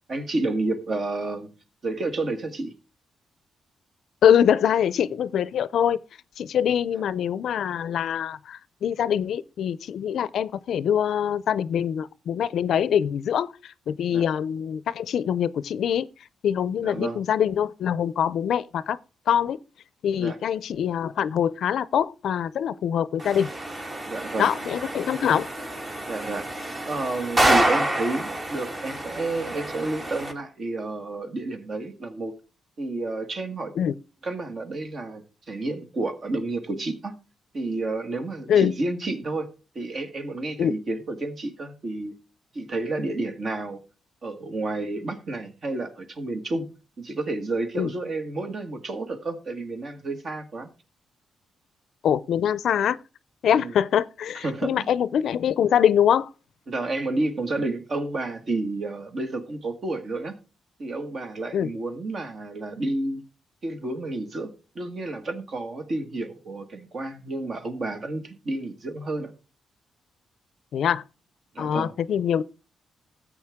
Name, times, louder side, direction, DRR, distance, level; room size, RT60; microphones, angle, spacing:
voice 1, 0.1-1.5 1.8-2.7 14.1-14.2 16.8-17.2 20.2-20.4 24.0-24.5 26.1-26.5 26.8-32.3 32.8-33.7 34.2-37.1 37.5-39.5 39.8-42.1 42.5-43.8 44.2-46.7 47.0-50.7 53.6-53.7 54.4-54.9 56.7-60.4 60.8-63.2 63.6-69.3 71.5-71.9, right 2 dB, 45° right, 1.8 m, -30 dB
voice 2, 4.2-6.0 6.4-16.1 16.4-19.0 19.3-19.6 20.0-23.5 24.4-25.5 33.8-33.9 38.5-38.7 40.6-40.7 47.8-47.9 52.0-53.0 53.4-56.3 61.5-61.7 70.7-71.0 71.6-72.4, left 9 dB, 70° left, 0.5 m, -24 dB
sound 1, 23.2-30.3, right 1 dB, 30° right, 2.1 m, -28 dB
13.5 x 8.2 x 3.6 m
cardioid pair, 105°, 0 cm